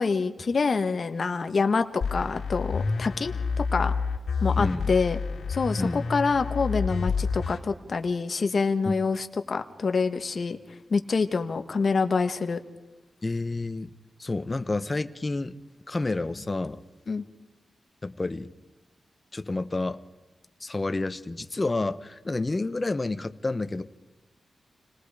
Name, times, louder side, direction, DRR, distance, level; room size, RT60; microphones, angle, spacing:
voice 1, 0.0-3.9 4.4-5.2 5.5-10.6 10.9-12.6 17.1-17.2, left 4 dB, 50° left, 7 dB, 1.4 m, -26 dB
sound 1, 2.0-7.6, left 5 dB, 85° left, 2.7 m, -29 dB
voice 2, 4.6-4.9 5.8-6.0 8.8-8.9 13.2-13.9 14.2-15.6 15.9-16.8 18.0-18.5 19.3-20.0 20.6-23.8, left 2 dB, 25° left, 11 dB, 0.9 m, -29 dB
29.0 x 19.5 x 4.9 m, 1.1 s
wide cardioid pair, 120°, 0 cm